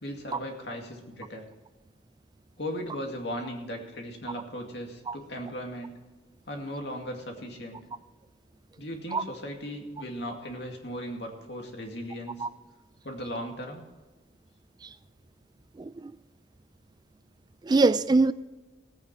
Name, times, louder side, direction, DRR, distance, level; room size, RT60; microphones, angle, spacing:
voice 1, 0.0-1.5 2.6-6.0 6.5-7.8 8.8-12.5 13.0-13.9, equal, 70° left, 2.3 m, -37 dB
voice 2, 15.8-16.1 17.6-18.3, right 3 dB, 25° right, 0.3 m, -23 dB
17.5 x 8.8 x 4.8 m
head